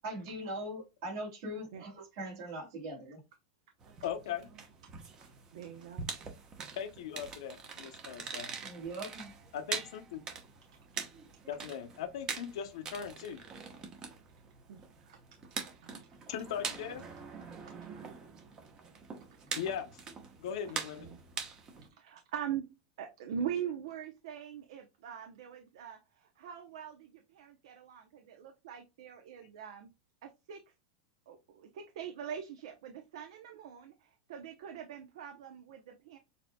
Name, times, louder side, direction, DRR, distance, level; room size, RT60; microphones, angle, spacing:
voice 1, 0.0-3.2 8.6-9.3, right 1 dB, 50° right, 2.6 m, -41 dB
sound 1, 3.8-21.9, right 5 dB, 20° right, 0.9 m, -44 dB
voice 2, 4.0-4.5 6.8-8.5 9.5-10.2 11.5-13.5 16.3-17.0 19.6-20.0 20.4-21.1, left 8 dB, 70° left, 0.8 m, -39 dB
voice 3, 5.2-6.1 14.7-15.2 15.6-16.3 21.0-21.2 22.0-22.7 23.0-29.9 30.2-30.6 31.3-36.2, right 8 dB, 70° right, 0.7 m, -43 dB
6.7 x 2.8 x 2.2 m
supercardioid pair, 165°, 3 cm